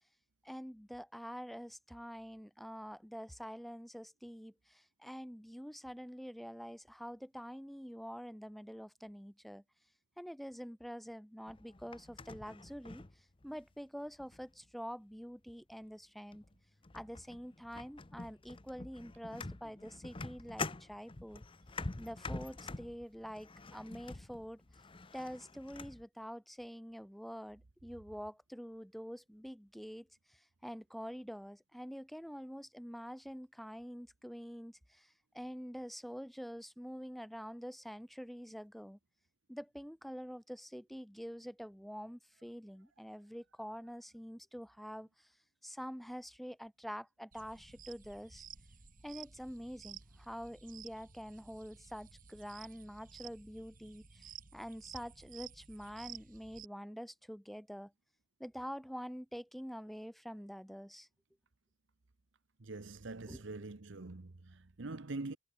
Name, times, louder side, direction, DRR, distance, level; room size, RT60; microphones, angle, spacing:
voice 1, 0.4-9.6 10.2-13.0 13.4-16.4 16.9-21.4 22.0-24.6 25.1-39.0 39.5-45.3 45.6-48.4 49.0-57.9 58.4-61.1 63.3-63.4, equal, ahead, 5.5 m, -46 dB
sound 1, 11.5-13.7 14.2-14.6 15.7-15.8 16.3-16.5 16.8-26.0, left 3 dB, 25° left, 0.8 m, -46 dB
sound 2, 47.3-56.7, right 8 dB, 40° right, 2.1 m, -54 dB
voice 2, 62.6-65.4, right 2 dB, 60° right, 1.0 m, -44 dB
head